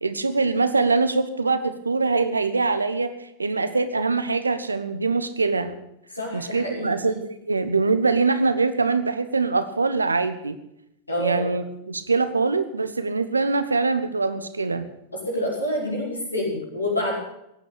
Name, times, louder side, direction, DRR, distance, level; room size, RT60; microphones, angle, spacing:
voice 1, 0.0-3.1 3.4-5.7 6.3-10.6 11.2-14.9, right 3 dB, 80° right, 11 dB, 1.3 m, -23 dB
voice 2, 6.1-6.9 11.1-11.5 15.3-17.2, left 1 dB, 85° left, -2 dB, 5.7 m, -27 dB
16.5 x 9.1 x 8.3 m, 0.81 s
figure-of-eight pair, 90°, 0 cm